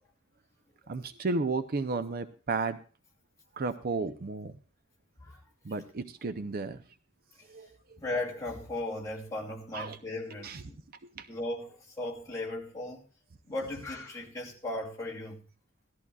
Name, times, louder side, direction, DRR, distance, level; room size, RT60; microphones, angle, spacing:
voice 1, 0.9-2.8 3.5-4.5 5.6-6.8 7.5-8.0 9.7-10.0 10.4-10.6 11.2-11.3, right 3 dB, 50° right, 0.6 m, -33 dB
voice 2, 8.0-10.8 11.3-13.1 13.4-15.4, left 2 dB, 15° left, 2.7 m, -37 dB
18.0 x 13.5 x 2.4 m
head